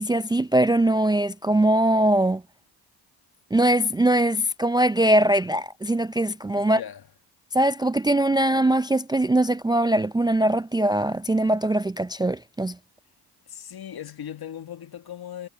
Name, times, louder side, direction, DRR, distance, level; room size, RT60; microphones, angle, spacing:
voice 1, 0.0-2.4 3.5-6.8 7.5-12.8, right 1 dB, 10° right, 0.4 m, -21 dB
voice 2, 6.6-7.0 13.5-15.5, left 10 dB, 60° left, 1.8 m, -38 dB
cardioid pair, 75°, 42 cm